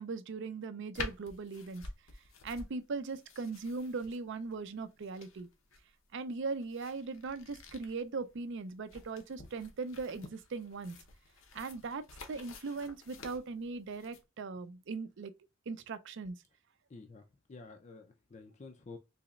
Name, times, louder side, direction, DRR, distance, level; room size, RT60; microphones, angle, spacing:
voice 1, 0.0-1.8 2.4-5.5 6.1-11.0 11.5-15.3 15.7-16.4, right 4 dB, 65° right, 0.5 m, -39 dB
sound 1, 0.9-14.2, left 3 dB, 75° left, 0.9 m, -49 dB
voice 2, 16.9-19.0, left 3 dB, 35° left, 0.4 m, -50 dB
4.0 x 2.9 x 2.3 m
head